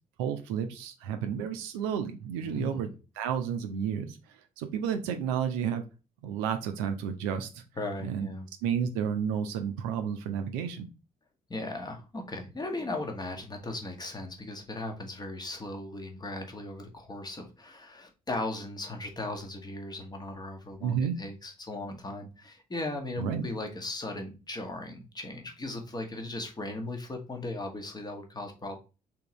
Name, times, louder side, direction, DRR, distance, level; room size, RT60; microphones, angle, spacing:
voice 1, 0.2-5.8 6.2-7.6 8.0-8.3 8.6-10.9 20.8-21.2 23.2-23.4, right 8 dB, 65° right, 7 dB, 0.5 m, -31 dB
voice 2, 2.4-2.9 7.8-8.5 11.5-28.8, left 2 dB, 20° left, 4 dB, 1.0 m, -37 dB
3.7 x 2.8 x 2.9 m, 0.30 s
figure-of-eight pair, 45°, 20 cm